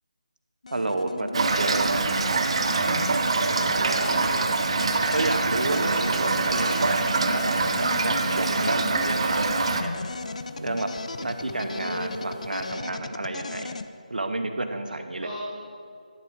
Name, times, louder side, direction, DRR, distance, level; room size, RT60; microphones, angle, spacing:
sound 1, 0.6-13.9, left 3 dB, 55° left, 0.4 m, -36 dB
voice 1, 0.7-2.0 5.1-7.0 7.3-7.5 7.8-9.9 10.6-10.9 11.2-13.8 14.1-15.3, right 2 dB, 80° right, 7 dB, 0.8 m, -30 dB
Toilet flush / Fill (with liquid), 1.3-9.8, right 3 dB, 40° right, 0.5 m, -24 dB
voice 2, 3.5-4.4 6.0-6.3 11.4-12.4 15.2-15.3, equal, 10° right, -13 dB, 2.2 m, -35 dB
sound 2, 6.6-12.7, left 2 dB, 10° left, 2.6 m, -49 dB
11.0 x 8.1 x 3.6 m, 2.3 s
figure-of-eight pair, 165°, 5 cm